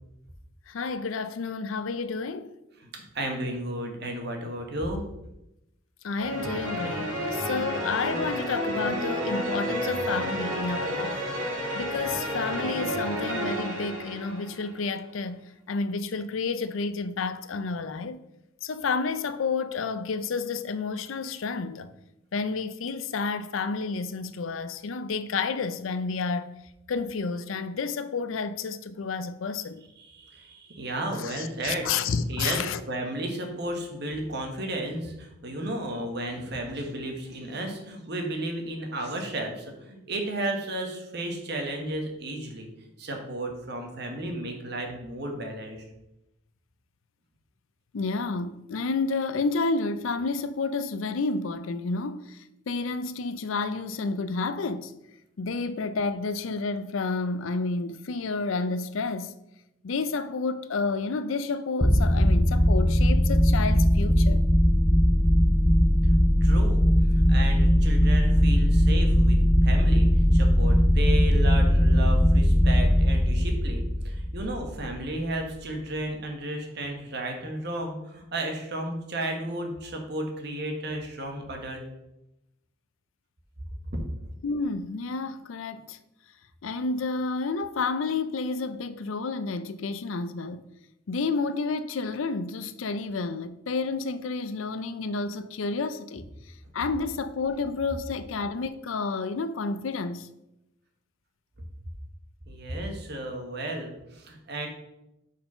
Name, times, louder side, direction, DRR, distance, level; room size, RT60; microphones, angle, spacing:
voice 1, 0.7-2.5 6.0-11.2 11.7-18.2 18.6-21.9 22.3-26.5 26.9-29.8 31.2-32.8 47.9-52.4 52.7-54.9 55.4-59.4 59.8-64.5 84.4-86.0 86.6-90.6 91.1-96.2 96.7-100.3, left 4 dB, 85° left, 0.5 m, -30 dB
voice 2, 2.8-5.0 30.0-42.7 43.0-45.8 66.4-70.1 70.3-81.8 102.5-104.7, right 1 dB, 55° right, 1.4 m, -33 dB
sound 1, 6.2-14.7, equal, 80° right, 2.4 m, -31 dB
sound 2, 61.8-75.1, equal, 10° left, 0.5 m, -20 dB
5.6 x 4.7 x 5.5 m
head